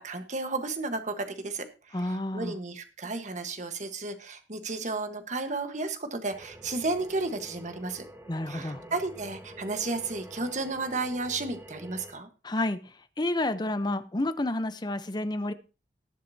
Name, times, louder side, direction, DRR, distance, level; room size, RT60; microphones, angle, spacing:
voice 1, 0.0-1.6 2.0-8.0 8.5-12.3, right 3 dB, 45° right, 7 dB, 1.3 m, -33 dB
voice 2, 1.9-2.6 8.3-8.8 12.4-12.8 13.2-15.5, left 1 dB, 25° left, 11 dB, 0.7 m, -30 dB
sound 1, 6.3-12.1, right 1 dB, 15° right, 1.7 m, -47 dB
19.0 x 7.6 x 2.8 m, 0.32 s
head